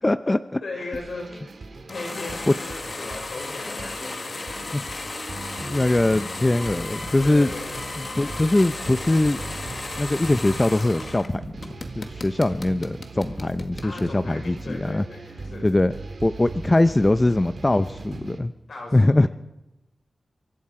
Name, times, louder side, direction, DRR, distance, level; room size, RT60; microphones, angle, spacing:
voice 1, 0.0-0.6 4.7-4.8 5.6-7.5 8.2-9.4 10.0-15.0 15.6-15.9 16.2-18.5 18.9-19.3, left 2 dB, 25° left, 12 dB, 0.6 m, -22 dB
voice 2, 0.6-1.5 1.9-4.7 7.2-7.7 13.8-15.9 18.7-19.3, left 2 dB, 80° left, 0 dB, 5.6 m, -37 dB
sound 1, 0.9-18.4, right 3 dB, 75° right, 2.2 m, -39 dB
sound 2, 1.9-11.3 11.6-14.1, left 3 dB, 55° left, 1.7 m, -35 dB
24.5 x 11.0 x 4.8 m, 0.95 s
cardioid pair, 60°, 0 cm